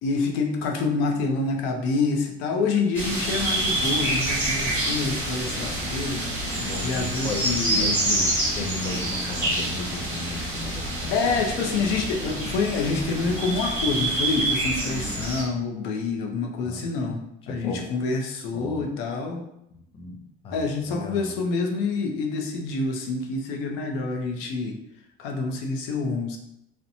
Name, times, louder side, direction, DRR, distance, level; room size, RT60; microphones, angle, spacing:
voice 1, 0.0-6.3 6.8-7.9 11.1-19.4 20.5-24.8 25.2-26.4, left 4 dB, 80° left, 2 dB, 0.5 m, -27 dB
sound 1, 2.9-15.4, right 1 dB, 10° right, 1.0 m, -27 dB
voice 2, 6.5-11.2 16.6-17.9 18.5-18.9 19.7-21.4, left 3 dB, 30° left, 3 dB, 0.4 m, -35 dB
2.8 x 2.1 x 2.6 m, 0.79 s
cardioid pair, 155°, 20 cm